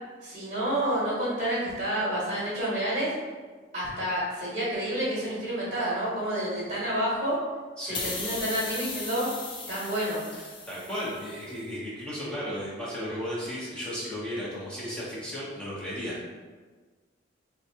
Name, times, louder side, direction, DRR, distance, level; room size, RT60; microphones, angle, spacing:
voice 1, 0.2-3.1 3.7-7.4 7.8-9.3 9.7-10.2, right 1 dB, 35° right, -9 dB, 1.0 m, -29 dB
voice 2, 7.8-8.1 10.4-16.3, equal, 5° left, -7 dB, 0.8 m, -35 dB
sound 1, 7.9-11.3, left 3 dB, 25° left, 0.3 m, -37 dB
3.8 x 2.2 x 2.7 m, 1.4 s
head